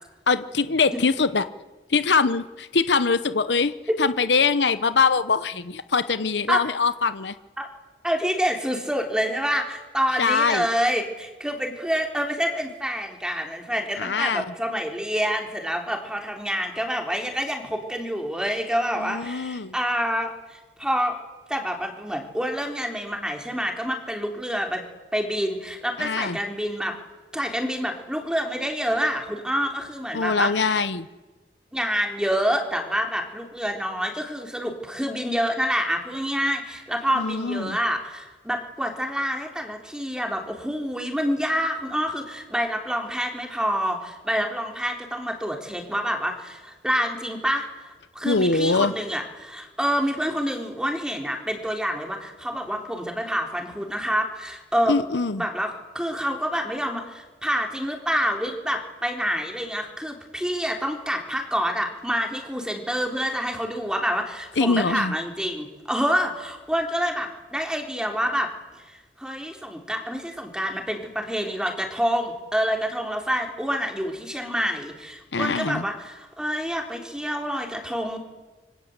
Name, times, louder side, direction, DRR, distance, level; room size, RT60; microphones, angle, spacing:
voice 1, 0.3-1.5 1.9-3.7 4.0-7.3 10.2-10.7 14.0-14.5 19.0-19.7 26.0-26.4 30.1-31.1 37.2-37.8 48.2-48.9 54.9-55.4 64.6-65.2 75.3-75.9, left 4 dB, 80° left, 13 dB, 0.9 m, -23 dB
voice 2, 8.0-21.2 21.5-24.8 25.1-27.0 27.3-30.8 31.7-55.0 55.4-68.5 68.9-78.2, equal, 5° right, 2 dB, 3.7 m, -27 dB
27.0 x 24.0 x 8.1 m, 1.2 s
head